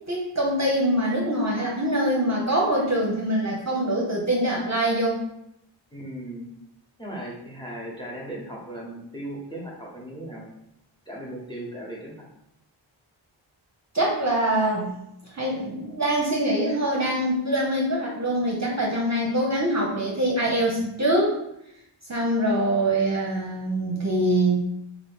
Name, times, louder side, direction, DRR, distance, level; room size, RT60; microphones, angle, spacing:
voice 1, 0.1-5.2 13.9-14.9 15.3-21.3 22.1-24.7, right 1 dB, 35° right, -3 dB, 0.7 m, -24 dB
voice 2, 5.9-6.5 7.0-10.4 11.1-12.2, right 1 dB, 10° left, -3 dB, 1.0 m, -37 dB
3.0 x 2.5 x 3.5 m, 0.80 s
wide cardioid pair, 40°, 47 cm